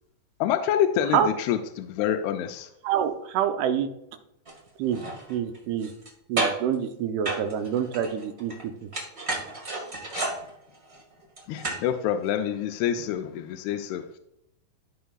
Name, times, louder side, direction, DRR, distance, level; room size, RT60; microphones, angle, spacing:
voice 1, 0.4-2.7 10.1-10.3 11.5-14.2, left 10 dB, 85° left, 6 dB, 2.5 m, -27 dB
voice 2, 2.8-3.9 4.8-5.0 5.3-5.9 6.3-8.5 8.8-8.9, right 9 dB, 80° right, 6 dB, 2.7 m, -26 dB
sound 1, 4.5-4.6 4.9-6.1 6.4-6.7 7.2-8.6 8.9-11.9 12.3-12.4, right 2 dB, 45° right, 0.8 m, -31 dB
14.5 x 5.5 x 2.4 m, 0.79 s
omnidirectional pair, 4.6 m